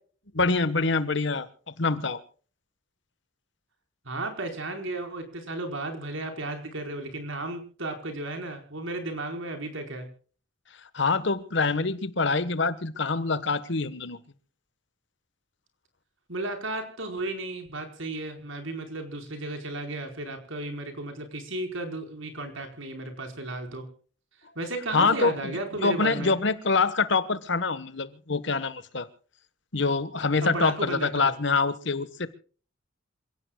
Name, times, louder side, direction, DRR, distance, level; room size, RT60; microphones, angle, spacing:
voice 1, 0.3-2.2 10.9-14.2 24.9-25.5 25.8-29.1 29.7-32.3, left 4 dB, 60° left, 1.3 m, -25 dB
voice 2, 4.0-10.1 16.3-23.8 24.5-26.3 30.4-31.3, right 2 dB, 70° right, 4.6 m, -34 dB
27.5 x 17.0 x 2.3 m
head